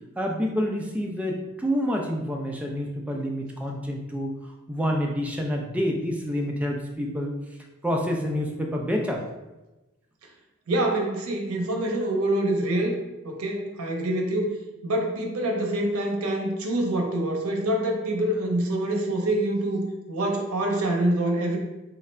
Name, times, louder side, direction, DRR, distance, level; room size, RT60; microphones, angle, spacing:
voice 1, 0.2-4.3 4.7-7.3 7.8-9.2, equal, 5° right, 0 dB, 0.4 m, -28 dB
voice 2, 10.7-12.9 13.2-14.6 14.8-19.8 20.1-21.6, right 1 dB, 75° right, 2 dB, 0.7 m, -25 dB
3.2 x 2.4 x 4.2 m, 1.0 s
head